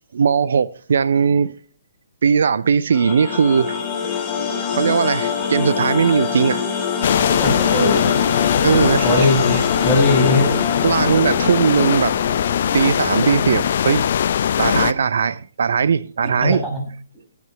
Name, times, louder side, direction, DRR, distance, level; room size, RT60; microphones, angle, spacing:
voice 1, 0.1-1.5 2.2-3.8 4.7-6.6 8.6-9.3 10.8-12.3 12.7-14.1 14.6-16.6, right 6 dB, 60° right, 0.6 m, -18 dB
sound 1, 2.9-14.0, left 7 dB, 20° left, 4.4 m, -25 dB
sound 2, 7.0-14.9, left 9 dB, 55° left, 0.5 m, -20 dB
voice 2, 7.4-8.2 8.7-10.6 16.4-16.9, left 1 dB, ahead, 7.0 m, -20 dB
20.0 x 9.5 x 3.2 m
figure-of-eight pair, 130°, 0 cm